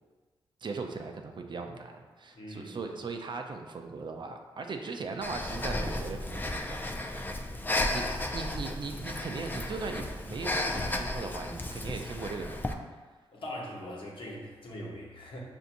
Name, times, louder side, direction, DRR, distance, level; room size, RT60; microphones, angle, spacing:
voice 1, 0.6-7.4 7.9-12.8, right 4 dB, 50° right, 4 dB, 0.5 m, -39 dB
voice 2, 2.3-2.8 13.3-15.4, left 1 dB, 55° left, -3 dB, 1.1 m, -42 dB
Breathing, 5.2-12.7, left 1 dB, 20° left, 0.4 m, -34 dB
5.7 x 2.6 x 2.6 m, 1.4 s
supercardioid pair, 50°, 10 cm